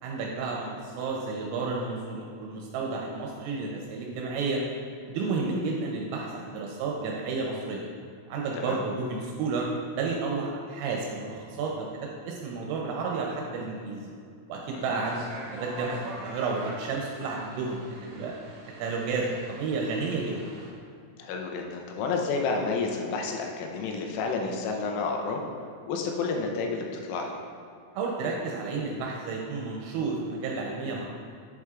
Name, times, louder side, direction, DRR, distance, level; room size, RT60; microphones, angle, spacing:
voice 1, 0.0-4.6 5.0-7.9 8.3-9.7 10.0-14.1 14.5-15.3 15.5-18.3 18.8-20.4 27.9-31.1, right 4 dB, 85° right, -1 dB, 3.2 m, -31 dB
sound 1, 14.8-20.7, right 2 dB, 60° right, 2.3 m, -43 dB
voice 2, 21.2-25.4 25.9-27.4, left 4 dB, 85° left, 2 dB, 3.2 m, -30 dB
7.9 x 7.6 x 2.4 m, 2.3 s
omnidirectional pair, 5.9 m